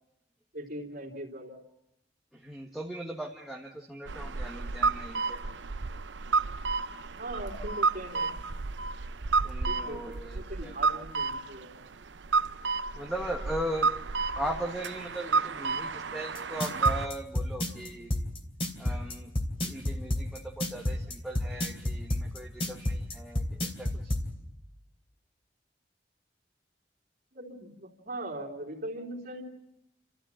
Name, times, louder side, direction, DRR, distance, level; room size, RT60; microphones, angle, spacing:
voice 1, 0.5-1.6 7.2-8.3 9.7-11.8 27.3-29.4, right 1 dB, 50° right, -2 dB, 3.4 m, -40 dB
voice 2, 2.3-5.4 9.4-10.7 12.9-13.9 14.3-18.1 18.8-19.3 19.6-24.1, right 1 dB, ahead, -1 dB, 1.5 m, -38 dB
sound 1, 4.1-17.1, right 4 dB, 80° right, 0.7 m, -31 dB
sound 2, 16.3-24.2, left 1 dB, 30° left, 2.8 m, -29 dB
29.5 x 14.0 x 8.8 m, 0.90 s
head